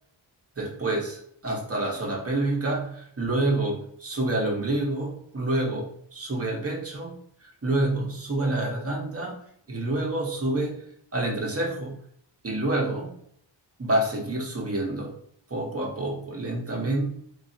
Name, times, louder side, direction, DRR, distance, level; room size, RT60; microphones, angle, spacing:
voice 1, 0.6-7.2 7.4-9.4 9.7-10.8 11.1-11.9 12.4-13.1 13.8-15.2 15.5-17.1, right 2 dB, 30° right, -1 dB, 1.0 m, -28 dB
3.9 x 2.7 x 2.7 m, 0.65 s
wide cardioid pair, 115°, 44 cm